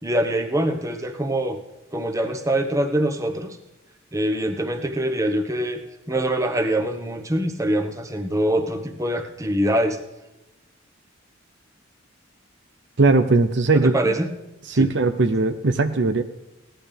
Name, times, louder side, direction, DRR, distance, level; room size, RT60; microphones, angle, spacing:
voice 1, 0.0-1.6 1.9-3.6 4.1-10.0 13.7-14.3 14.7-14.9, right 1 dB, 15° right, 5 dB, 1.1 m, -24 dB
voice 2, 13.0-13.9 14.7-16.2, right 3 dB, 60° right, 8 dB, 0.7 m, -19 dB
18.0 x 11.5 x 3.4 m, 0.99 s
head